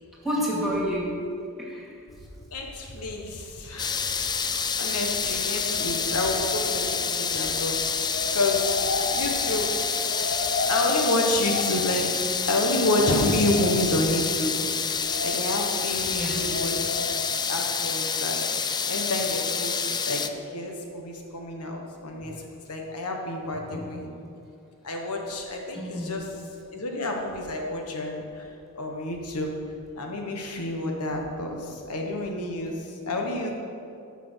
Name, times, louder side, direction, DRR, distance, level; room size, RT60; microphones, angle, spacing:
voice 1, 0.2-1.2 1.6-1.9 5.2-5.4 15.8-16.5 22.2-22.4 23.7-23.9 25.7-26.2, equal, ahead, -5 dB, 2.6 m, -30 dB
voice 2, 2.5-9.8 10.7-12.1 12.5-14.6 15.2-17.0 17.5-18.4 18.9-19.8 20.1-22.3 22.7-24.1 24.8-26.3 26.7-28.5 28.7-29.5 30.0-33.5, left 2 dB, 85° left, 2 dB, 1.4 m, -29 dB
sound 1, 3.8-20.3, left 6 dB, 20° left, 0.4 m, -28 dB
sound 2, 5.1-18.7 19.1-19.3, left 3 dB, 55° left, 0.8 m, -35 dB
13.0 x 6.0 x 6.3 m, 2.6 s
head